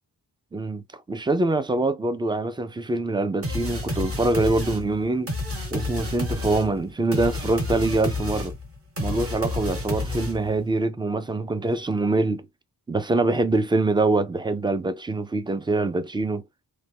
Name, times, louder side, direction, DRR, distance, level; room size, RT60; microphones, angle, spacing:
voice 1, 0.5-5.3 5.7-8.5 9.0-12.5 12.9-16.4, right 2 dB, 10° right, 0.3 m, -24 dB
sound 1, 3.4-10.6, left 2 dB, 35° right, 1.0 m, -30 dB
3.2 x 2.2 x 2.7 m
wide cardioid pair, 95°, 42 cm